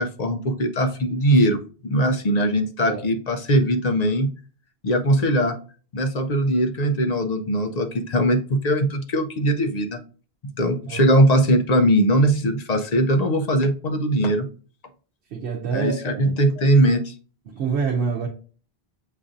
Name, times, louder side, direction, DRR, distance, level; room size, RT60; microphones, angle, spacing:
voice 1, 0.0-4.3 4.8-5.6 5.9-10.0 10.4-14.5 15.7-17.1, right 1 dB, 50° left, 5 dB, 0.5 m, -20 dB
voice 2, 15.3-16.3 17.5-18.3, right 6 dB, 85° right, 0 dB, 0.9 m, -26 dB
7.4 x 2.6 x 2.4 m, 0.39 s
omnidirectional pair, 1.1 m